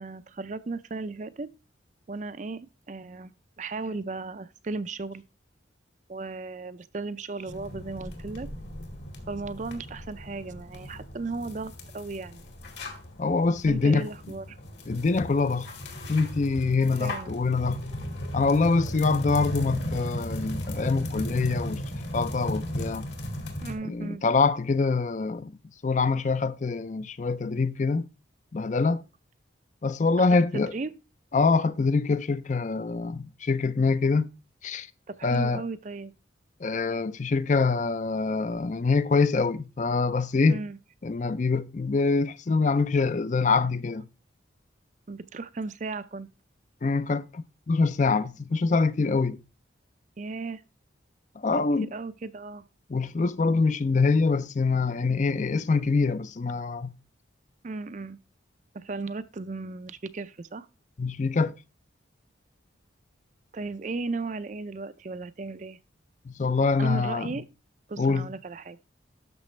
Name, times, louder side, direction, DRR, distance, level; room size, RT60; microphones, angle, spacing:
voice 1, 0.0-1.5 2.1-5.2 6.1-8.5 9.3-12.4 13.7-14.6 17.0-17.4 23.6-24.2 30.2-30.9 35.1-36.1 40.5-40.8 45.1-46.3 50.2-50.6 51.6-52.6 57.6-58.2 58.7-60.7 63.5-65.8 66.8-67.4 67.9-68.8, right 3 dB, 40° right, 0.4 m, -36 dB
sound 1, 7.5-23.7, equal, 60° left, 2.2 m, -36 dB
voice 2, 13.2-14.1 14.9-15.7 16.1-17.8 18.3-21.8 22.1-23.1 23.8-25.5 25.8-28.1 28.5-29.0 29.8-30.7 31.3-34.3 34.6-34.9 35.2-35.6 36.6-40.6 41.0-44.1 46.8-49.4 51.4-51.9 52.9-56.9 61.0-61.5 66.3-67.3 68.0-68.3, left 4 dB, 40° left, 0.4 m, -25 dB
12.5 x 6.0 x 3.2 m
head